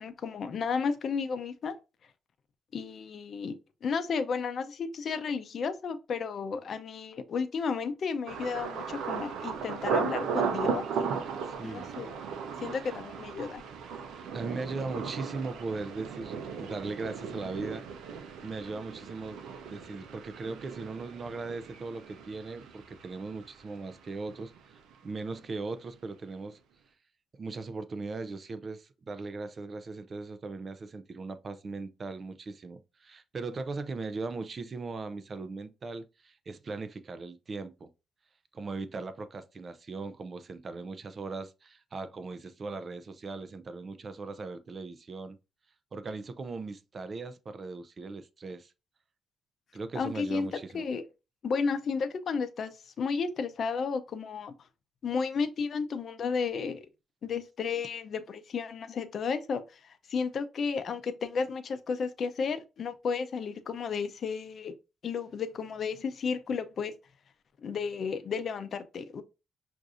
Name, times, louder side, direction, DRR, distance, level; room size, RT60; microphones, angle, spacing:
voice 1, 0.0-1.8 2.7-10.8 11.6-12.1 12.6-13.6 49.9-50.5 50.7-51.0 51.4-54.5 55.0-56.8 57.2-64.7 65.0-66.9 67.6-69.2, left 5 dB, 55° left, 0.6 m, -33 dB
Thunder, 8.3-24.0 24.3-24.9 25.3-25.6, right 6 dB, 85° right, 0.6 m, -36 dB
voice 2, 11.4-11.9 12.7-12.8 14.1-17.8 18.4-19.4 19.7-26.6 27.4-37.9 38.5-45.4 45.9-48.7 49.7-50.9, right 3 dB, 40° right, 0.5 m, -39 dB
6.0 x 2.6 x 2.5 m
cardioid pair, 90°, 0 cm